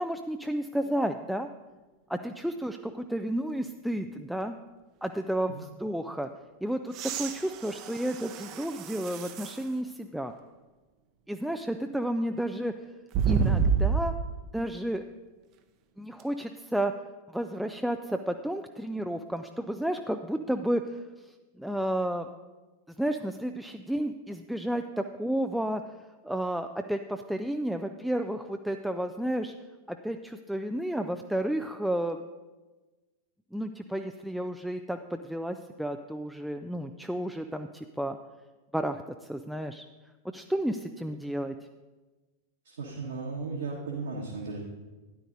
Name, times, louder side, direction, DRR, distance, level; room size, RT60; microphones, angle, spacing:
voice 1, 0.0-1.5 2.1-4.6 5.0-6.3 6.6-10.3 11.3-12.9 13.2-14.2 14.5-15.0 16.0-16.9 17.3-22.3 23.0-25.8 26.2-29.5 29.9-32.2 33.5-38.2 38.7-39.0 39.3-39.8 40.3-41.5, right 1 dB, ahead, 6 dB, 0.4 m, -32 dB
sound 1, 6.9-9.7 10.3-10.4 13.1-14.4 16.2-16.3, right 6 dB, 40° right, 0.7 m, -29 dB
voice 2, 42.6-44.6, right 4 dB, 65° right, -4 dB, 1.5 m, -36 dB
12.5 x 10.0 x 2.7 m, 1.2 s
figure-of-eight pair, 90°, 0 cm